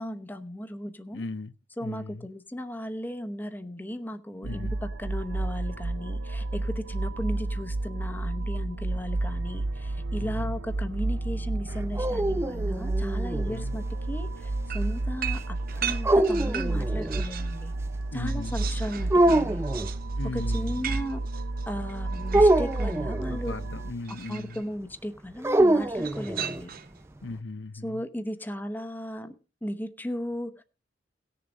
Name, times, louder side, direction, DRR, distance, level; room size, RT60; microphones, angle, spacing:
voice 1, 0.0-1.3 1.8-17.7 18.1-19.6 20.3-23.6 24.1-26.7 27.8-30.6, equal, 10° left, 0.9 m, -36 dB
voice 2, 1.1-1.5 1.8-2.3 4.4-4.7 10.2-10.5 13.4-13.8 18.1-18.6 20.2-21.0 23.3-24.6 27.2-28.0, left 3 dB, 75° left, 0.8 m, -37 dB
sound 1, 4.4-23.9, right 2 dB, 85° right, 0.6 m, -31 dB
sound 2, 11.7-13.6 16.0-17.3 19.1-19.9 22.3-23.4 25.4-26.6, right 1 dB, 15° right, 0.6 m, -24 dB
sound 3, 14.7-17.6 17.9-23.0 24.0-24.6 26.0-27.0, right 9 dB, 50° right, 0.9 m, -38 dB
18.0 x 6.9 x 5.2 m
head